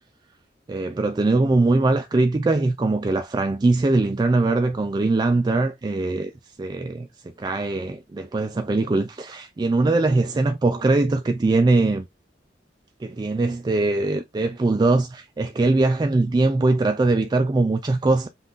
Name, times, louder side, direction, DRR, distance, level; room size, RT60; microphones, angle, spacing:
voice 1, 0.7-6.3 6.6-7.1 7.4-12.1 13.0-18.3, right 2 dB, 25° right, 0.3 m, -21 dB
5.5 x 2.4 x 3.8 m
head